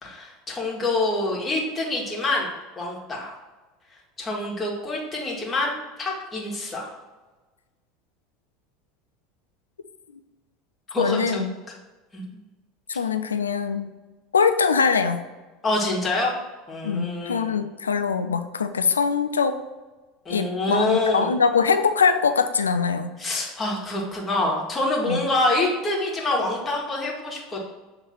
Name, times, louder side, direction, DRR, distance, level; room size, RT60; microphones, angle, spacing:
voice 1, 0.0-2.5 2.8-3.3 4.2-6.9 10.9-11.8 12.1-12.2 15.6-16.3 16.7-17.6 20.3-21.3 23.2-27.6, left 2 dB, 25° left, -2 dB, 1.7 m, -26 dB
voice 2, 11.0-11.5 12.9-13.9 14.3-15.3 16.8-19.6 20.3-23.1 25.1-25.2, left 5 dB, 75° left, 9 dB, 0.4 m, -22 dB
7.2 x 3.3 x 4.3 m, 1.2 s
figure-of-eight pair, 75°, 0 cm